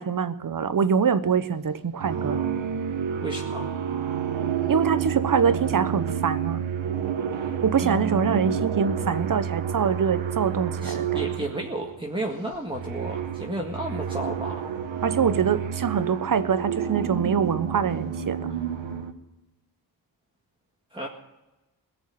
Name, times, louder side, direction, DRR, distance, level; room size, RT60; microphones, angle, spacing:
voice 1, 0.0-2.5 4.7-6.6 7.6-11.3 15.0-18.4, right 6 dB, 45° right, 13 dB, 1.0 m, -24 dB
sound 1, 1.2-1.6 2.0-12.0 12.5-19.1, right 8 dB, 85° right, 1.2 m, -29 dB
voice 2, 3.2-3.6 7.8-8.4 10.8-14.7 20.9-21.1, right 1 dB, 10° right, -1 dB, 1.8 m, -32 dB
17.5 x 7.1 x 9.0 m, 1.0 s
cardioid pair, 75°, 45 cm